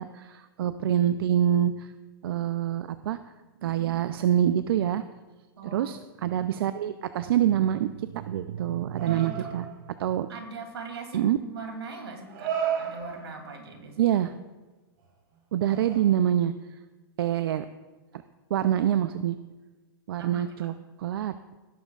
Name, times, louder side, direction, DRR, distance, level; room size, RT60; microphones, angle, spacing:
voice 1, 0.0-1.9 2.2-3.2 3.6-5.0 5.7-9.6 10.0-10.3 11.1-11.4 14.0-14.3 15.5-16.5 17.2-17.6 18.5-19.3 20.1-21.3, right 10 dB, 70° right, 12 dB, 0.5 m, -26 dB
voice 2, 5.6-5.9 9.0-9.5 10.3-14.2 20.2-20.7, right 5 dB, 85° right, 3 dB, 2.9 m, -40 dB
sound 1, 8.9-9.9 11.1-11.2 12.1-13.5 15.0-15.1 15.6-16.3, right 8 dB, 50° right, 3.5 m, -33 dB
18.0 x 12.0 x 2.5 m, 1.2 s
hypercardioid pair, 120°, 13 cm